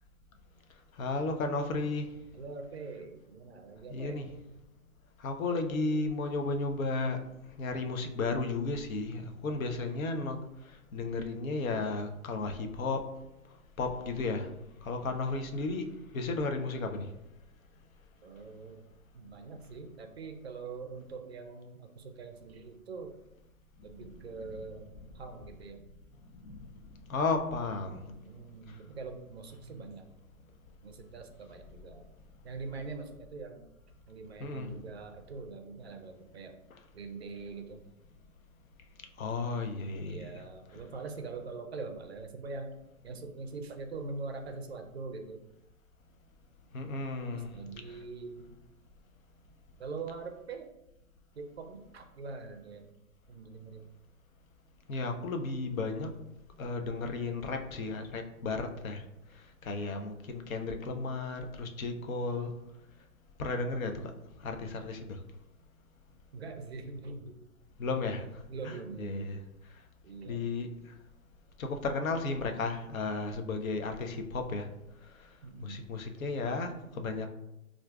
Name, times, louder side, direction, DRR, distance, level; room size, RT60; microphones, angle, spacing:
voice 1, 1.0-2.1 3.9-4.3 5.2-7.2 7.6-10.4 10.7-13.1 13.8-14.5 14.8-15.8 16.1-17.1 24.0-24.5 26.4-26.7 27.1-28.0 28.7-28.8 29.6-29.8 34.4-34.7 36.7-36.8 39.2-40.4 46.7-47.6 47.9-48.0 54.9-56.1 56.6-59.0 59.3-62.5 63.4-64.1 64.4-65.2 67.8-68.4 68.6-69.4 70.3-70.7 71.6-74.7 75.2-75.3 75.6-77.3, left 3 dB, 65° left, 5 dB, 0.6 m, -34 dB
voice 2, 2.3-4.2 18.2-18.8 19.1-23.2 23.8-24.9 25.1-25.8 28.0-30.1 30.8-32.0 32.4-33.7 34.1-36.6 36.9-37.8 40.0-42.7 43.0-45.4 47.3-48.6 49.8-50.7 51.4-52.9 53.3-53.8 66.3-67.4 68.5-69.4 70.0-70.5 75.4-75.9, right 4 dB, 45° right, 5 dB, 0.4 m, -43 dB
4.3 x 2.4 x 2.3 m, 0.89 s
hypercardioid pair, 150°, 45 cm